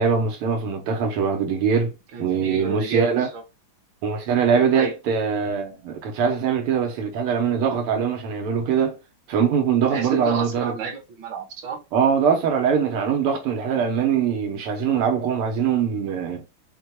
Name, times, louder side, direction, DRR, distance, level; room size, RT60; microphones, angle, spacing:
voice 1, 0.0-1.9 2.2-3.3 4.0-9.0 9.3-10.8 11.9-16.4, right 7 dB, 90° right, 1.9 m, -22 dB
voice 2, 2.1-3.4 4.7-4.9 9.9-11.8, right 3 dB, 60° right, 1.8 m, -30 dB
4.9 x 2.3 x 4.4 m
omnidirectional pair, 2.4 m